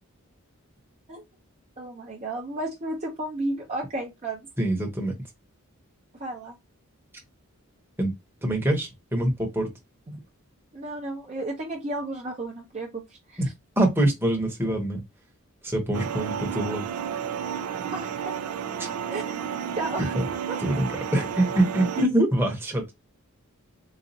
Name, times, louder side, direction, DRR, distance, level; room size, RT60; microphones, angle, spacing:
voice 1, 1.8-4.4 6.2-6.5 10.1-10.2 10.7-13.4 17.9-18.4 19.1-19.4 19.8-20.1 20.5-20.6, right 2 dB, 30° right, 0.6 m, -33 dB
voice 2, 4.6-5.1 8.0-8.1 8.4-9.7 13.4-13.5 13.8-15.0 15.6-16.9 18.8-18.9 20.1-20.3 20.6-22.9, right 1 dB, 10° right, 0.9 m, -24 dB
sound 1, 15.9-22.1, right 8 dB, 80° right, 0.4 m, -32 dB
4.0 x 2.4 x 2.6 m
head